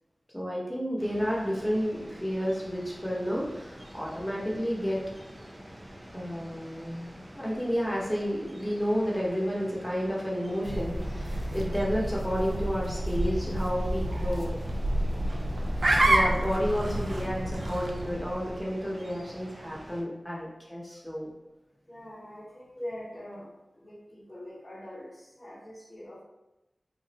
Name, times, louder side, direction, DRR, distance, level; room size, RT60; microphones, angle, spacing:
voice 1, 0.3-5.0 6.1-14.6 16.1-21.3, equal, 10° left, -5 dB, 1.0 m, -31 dB
sound 1, 1.0-20.0, equal, 35° right, 0.6 m, -47 dB
sound 2, 10.6-18.7, right 1 dB, 80° right, 0.4 m, -29 dB
voice 2, 15.9-16.3 21.9-26.2, left 1 dB, 40° left, -6 dB, 1.0 m, -43 dB
3.0 x 2.5 x 2.8 m, 0.97 s
wide cardioid pair, 60°, 0 cm